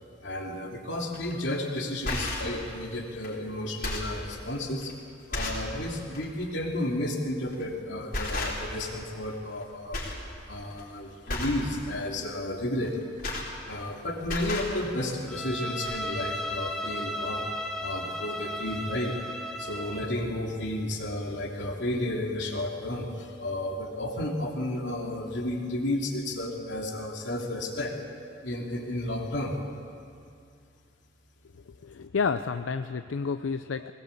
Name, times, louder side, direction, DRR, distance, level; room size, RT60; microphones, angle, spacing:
voice 1, 0.2-4.9 5.3-10.0 10.5-13.0 13.7-17.5 17.8-19.2 19.6-27.9 28.4-29.6, left 1 dB, 65° left, 0 dB, 3.0 m, -32 dB
sound 1, 1.1-1.3 1.9-2.6 3.2-3.3 3.7-4.2 4.8-4.9 5.3-5.7 6.1-6.3 7.5-7.7 8.1-8.9 9.2-9.6 9.9-10.2 10.6-10.8 11.3-11.7 12.8-13.9 14.2-14.7 15.5-15.6 15.8-16.0, left 2 dB, 45° left, 4.6 m, -33 dB
Bowed string instrument, 15.3-20.2, left 1 dB, 5° left, 1.4 m, -35 dB
voice 2, 31.7-33.9, left 5 dB, 90° left, 10 dB, 0.5 m, -30 dB
21.0 x 19.0 x 8.4 m, 2.4 s
head